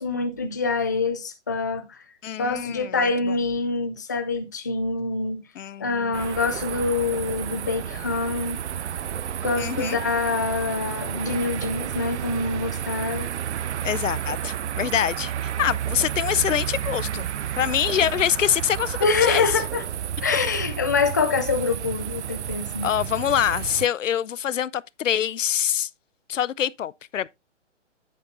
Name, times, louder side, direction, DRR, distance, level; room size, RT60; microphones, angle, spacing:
voice 1, 0.0-2.0 2.4-5.4 5.8-8.6 9.4-13.3 19.0-19.8 20.2-22.9, left 4 dB, 15° left, 0.4 m, -25 dB
voice 2, 2.2-3.4 5.6-6.2 9.6-10.0 13.8-17.3 17.6-19.5 22.8-25.9 26.3-27.4, left 10 dB, 90° left, 0.6 m, -25 dB
sound 1, 6.1-23.9, right 9 dB, 65° right, 0.6 m, -31 dB
9.4 x 8.3 x 2.5 m
hypercardioid pair, 155°, 37 cm